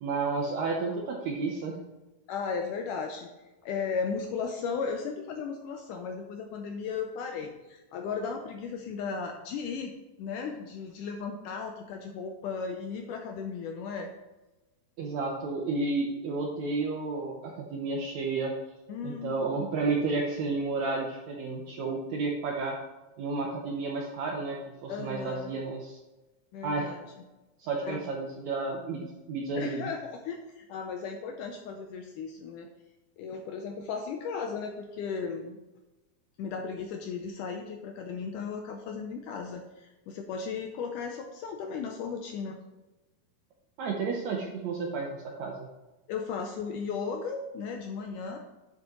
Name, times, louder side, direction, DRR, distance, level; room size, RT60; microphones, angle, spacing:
voice 1, 0.0-1.8 15.0-18.5 19.0-22.7 23.2-26.0 26.6-26.9 27.6-29.9 43.8-45.7, right 3 dB, 75° right, 0 dB, 1.7 m, -31 dB
voice 2, 2.3-3.3 3.6-9.9 10.2-14.1 18.9-19.6 24.9-25.5 26.5-27.1 27.8-28.0 29.6-32.7 33.2-35.6 36.4-42.6 46.1-48.4, left 5 dB, 80° left, 4 dB, 1.9 m, -36 dB
9.7 x 7.7 x 3.1 m, 1.1 s
omnidirectional pair, 4.3 m